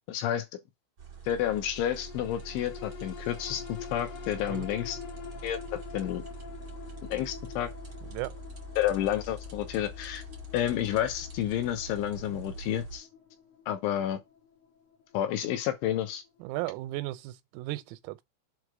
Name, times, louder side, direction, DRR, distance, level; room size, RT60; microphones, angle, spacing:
voice 1, 0.1-0.5 1.3-5.0 5.4-6.2 7.1-7.7 8.8-10.2 10.5-13.1 13.7-14.2 15.1-16.2, left 11 dB, 75° left, 3.2 m, -30 dB
sound 1, 1.0-13.0, right 1 dB, 50° right, 1.0 m, -44 dB
sound 2, 1.5-16.2 16.6-16.7, left 9 dB, 60° left, 2.0 m, -47 dB
voice 2, 8.0-8.4 16.4-18.2, right 18 dB, 90° right, 3.5 m, -36 dB
7.9 x 3.2 x 6.2 m
omnidirectional pair, 5.9 m